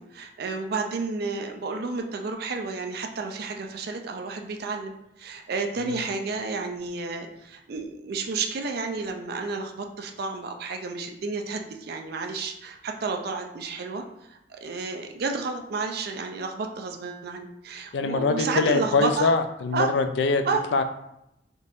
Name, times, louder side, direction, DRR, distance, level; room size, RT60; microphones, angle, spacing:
voice 1, 0.0-4.9 5.2-14.0 14.3-19.3 19.7-19.9 20.4-20.6, right 4 dB, 60° right, 4 dB, 0.4 m, -31 dB
voice 2, 17.9-20.4 20.7-20.8, left 4 dB, 70° left, 8 dB, 0.3 m, -23 dB
3.7 x 2.8 x 2.5 m, 0.82 s
head